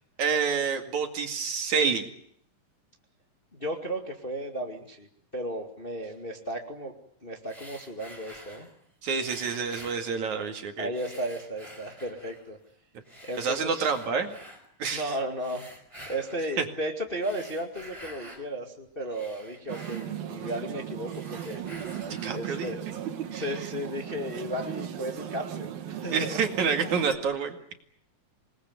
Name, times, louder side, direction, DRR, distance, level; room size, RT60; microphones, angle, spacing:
voice 1, 0.2-2.1 9.0-10.9 13.4-14.4 14.8-15.1 16.6-16.7 22.1-22.8 23.3-23.4 26.1-27.6, right 5 dB, 60° right, 5 dB, 3.5 m, -28 dB
voice 2, 3.5-5.1 5.3-6.9 7.2-8.7 10.8-12.6 13.2-13.9 14.9-15.7 16.1-21.6 22.3-22.8 23.3-26.5 26.9-27.0, right 1 dB, 20° left, 3 dB, 1.9 m, -34 dB
sound 1, 7.4-8.8 9.2-10.6 10.9-12.5 13.0-14.6 15.3-16.5 17.1-18.5 18.9-20.7 21.0-22.5, equal, 10° right, 4.4 m, -48 dB
sound 2, 19.7-27.2, right 10 dB, 90° right, 3.7 m, -37 dB
27.0 x 20.5 x 9.4 m, 0.68 s
omnidirectional pair, 4.0 m